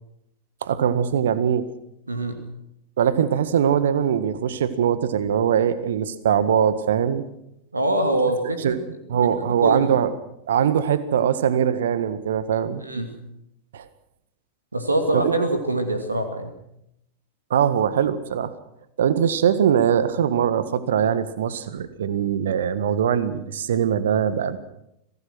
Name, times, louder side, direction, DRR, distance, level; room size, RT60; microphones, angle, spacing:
voice 1, 0.6-1.7 3.0-7.2 8.6-8.8 9.1-10.1 10.4-12.8 13.7-13.9 15.1-15.3 17.5-18.5 19.0-24.6, right 8 dB, 60° right, 14 dB, 1.7 m, -21 dB
voice 2, 7.7-8.7 9.6-9.9 12.8-13.1 14.7-16.6, right 1 dB, 80° right, 6 dB, 2.6 m, -24 dB
25.5 x 18.0 x 6.3 m, 0.79 s
figure-of-eight pair, 90°, 0 cm